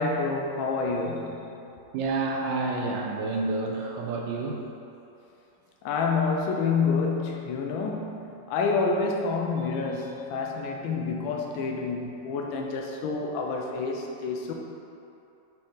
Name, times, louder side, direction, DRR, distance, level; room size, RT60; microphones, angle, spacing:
voice 1, 0.0-1.4 5.8-14.5, left 4 dB, 90° left, 1 dB, 1.4 m, -28 dB
voice 2, 1.9-4.6, right 3 dB, 80° right, 0 dB, 1.3 m, -29 dB
6.2 x 4.5 x 3.8 m, 2.8 s
omnidirectional pair, 2.1 m